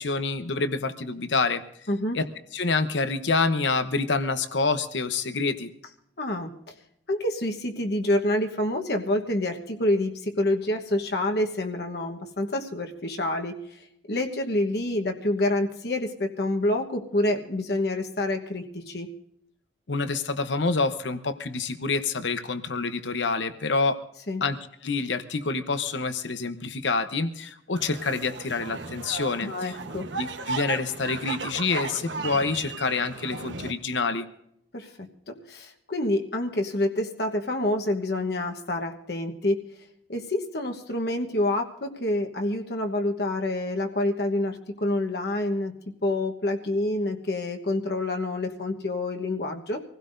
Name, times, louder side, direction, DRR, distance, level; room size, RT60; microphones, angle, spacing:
voice 1, 0.0-1.6 2.1-2.2 2.5-5.7 19.9-24.0 24.4-24.6 24.8-29.5 30.2-34.3, left 4 dB, 90° left, 10 dB, 0.9 m, -27 dB
voice 2, 1.9-2.2 6.2-6.7 7.1-19.1 24.3-24.4 29.4-30.1 34.7-34.9 35.3-39.6 40.1-45.7 46.0-49.8, left 1 dB, 60° left, 3 dB, 1.2 m, -27 dB
sound 1, 27.7-33.7, right 4 dB, 90° right, 1.2 m, -36 dB
25.5 x 16.5 x 2.6 m, 0.76 s
head